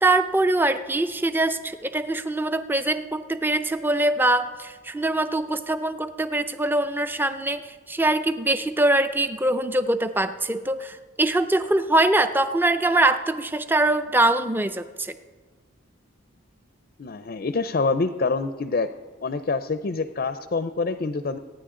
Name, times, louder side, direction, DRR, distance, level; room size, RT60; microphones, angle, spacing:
voice 1, 0.0-15.1, right 2 dB, 10° right, 11 dB, 0.4 m, -23 dB
voice 2, 17.0-18.9 19.2-21.4, left 3 dB, 45° left, 11 dB, 0.5 m, -26 dB
26.0 x 9.6 x 3.8 m, 1.5 s
head